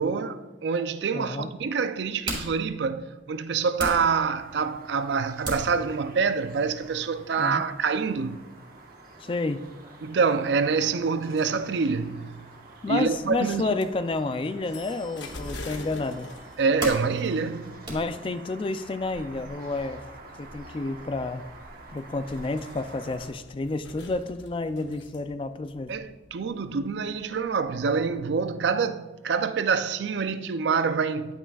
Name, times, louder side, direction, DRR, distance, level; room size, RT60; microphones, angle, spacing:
voice 1, 0.0-8.4 10.0-12.4 12.9-13.8 16.6-17.8 25.9-31.4, right 5 dB, 70° right, 0.4 m, -26 dB
voice 2, 1.1-1.5 7.4-7.7 9.2-9.7 12.8-16.3 17.9-20.0 20.4-21.5 21.9-25.9, left 3 dB, 30° left, 0.3 m, -30 dB
sound 1, 1.5-19.1, right 1 dB, 25° right, 2.2 m, -42 dB
sound 2, 4.3-23.3, right 2 dB, 50° right, 1.1 m, -48 dB
sound 3, 12.9-28.3, left 2 dB, 70° left, 0.9 m, -47 dB
11.0 x 9.0 x 2.3 m
head